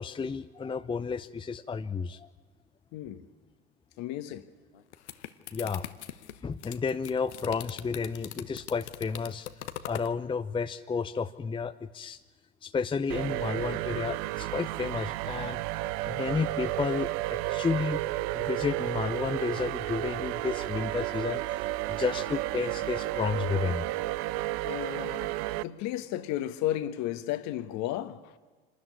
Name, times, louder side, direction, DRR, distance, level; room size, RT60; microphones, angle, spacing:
voice 1, 0.0-2.3 5.5-5.9 6.4-9.5 9.9-12.2 12.6-15.6 16.1-18.0 18.3-21.4 21.9-23.8, left 5 dB, 15° left, 0.7 m, -31 dB
voice 2, 2.9-3.3 4.0-4.5 24.6-28.4, left 13 dB, 55° left, 1.5 m, -34 dB
sound 1, 4.7-10.1, left 11 dB, 80° left, 1.1 m, -42 dB
sound 2, 13.1-25.6, right 17 dB, 55° right, 0.7 m, -32 dB
26.0 x 13.5 x 9.7 m
hypercardioid pair, 80°, 33 cm